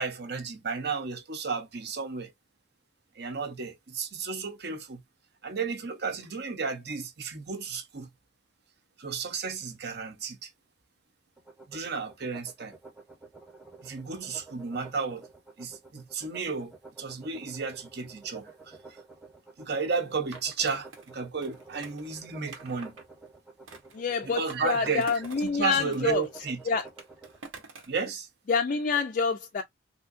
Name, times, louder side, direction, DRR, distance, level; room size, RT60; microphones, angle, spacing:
voice 1, 0.0-2.3 3.2-5.0 5.4-8.1 9.0-10.5 11.7-12.7 13.8-15.2 15.6-16.7 17.0-18.7 19.6-22.9 24.2-25.1 25.4-26.6 27.9-28.3, right 5 dB, 55° right, 0.8 m, -33 dB
sound 1, 11.4-27.4, right 3 dB, 5° right, 0.9 m, -51 dB
Skateboard, 20.3-23.0 23.7-25.5 25.8-28.0, right 3 dB, 85° right, 1.1 m, -48 dB
voice 2, 23.9-26.8 28.5-29.6, left 5 dB, 40° left, 0.3 m, -27 dB
3.6 x 2.7 x 2.5 m
head